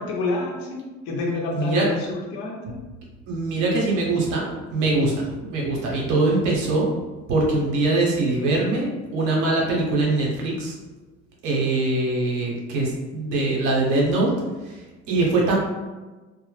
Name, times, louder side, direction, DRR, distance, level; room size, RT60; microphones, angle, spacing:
voice 1, 0.0-2.8, left 3 dB, 60° left, -1 dB, 0.8 m, -28 dB
voice 2, 1.5-1.8 3.3-6.9 7.3-10.7 11.4-14.3 14.6-15.6, right 2 dB, 80° right, -3 dB, 0.8 m, -23 dB
2.1 x 2.0 x 3.1 m, 1.2 s
hypercardioid pair, 60°, 38 cm